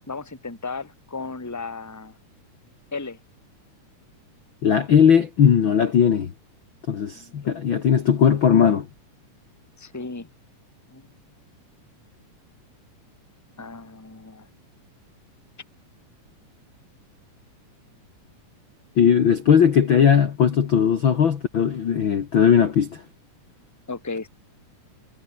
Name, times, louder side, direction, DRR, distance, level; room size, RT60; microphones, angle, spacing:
voice 1, 0.1-2.2 2.9-3.2 7.0-7.6 9.8-10.3 10.9-11.1 13.6-14.5 23.9-24.3, left 3 dB, 5° left, 2.1 m, -35 dB
voice 2, 4.6-6.3 6.9-8.9 19.0-23.0, left 8 dB, 45° left, 1.9 m, -18 dB
omnidirectional pair, 3.7 m